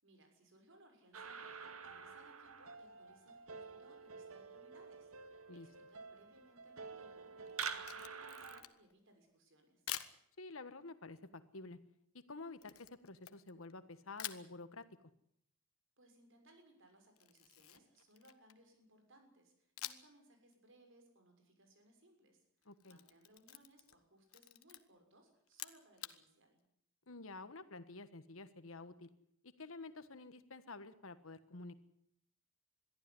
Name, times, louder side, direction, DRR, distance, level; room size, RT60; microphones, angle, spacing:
voice 1, 0.0-9.8 16.0-26.6, right 1 dB, 60° right, 5 dB, 6.6 m, -66 dB
sound 1, 1.1-8.6, right 5 dB, 80° right, 2.2 m, -48 dB
Camera, 7.5-8.9 9.9-10.2 12.6-13.8 14.2-14.5 17.2-18.7 19.8-20.2 20.5-20.6 22.6-24.0 24.3-24.8 25.5-26.2, left 12 dB, 85° left, 1.3 m, -48 dB
voice 2, 10.4-11.8 12.1-14.8 22.6-23.0 27.1-29.1 29.6-31.7, left 3 dB, 70° left, 12 dB, 1.4 m, -50 dB
22.5 x 14.5 x 9.9 m, 0.71 s
head